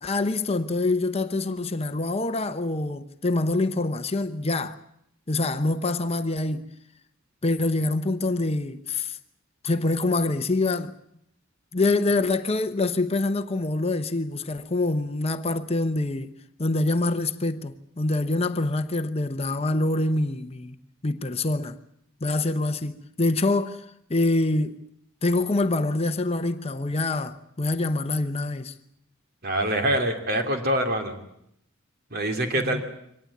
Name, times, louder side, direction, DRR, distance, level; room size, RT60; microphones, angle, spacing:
voice 1, 0.0-4.8 5.3-6.7 7.4-9.2 9.6-10.9 11.7-16.3 16.6-20.8 21.0-21.8 22.2-24.8 25.2-28.7 32.6-32.8, left 2 dB, 30° left, 0.8 m, -25 dB
voice 2, 29.4-31.1 32.1-32.8, right 1 dB, 50° right, 2.9 m, -25 dB
24.0 x 18.5 x 8.5 m
head